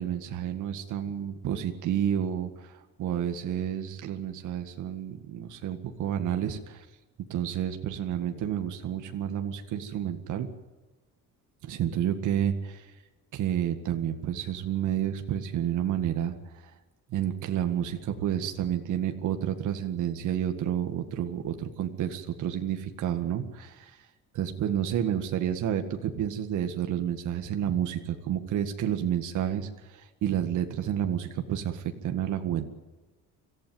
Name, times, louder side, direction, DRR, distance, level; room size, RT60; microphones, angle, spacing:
voice 1, 0.0-6.8 7.3-10.5 11.6-12.9 13.3-16.3 17.1-24.0 24.3-32.7, right 10 dB, 65° right, 6 dB, 2.0 m, -30 dB
26.0 x 15.0 x 9.4 m, 1.2 s
cardioid pair, 160°, 32 cm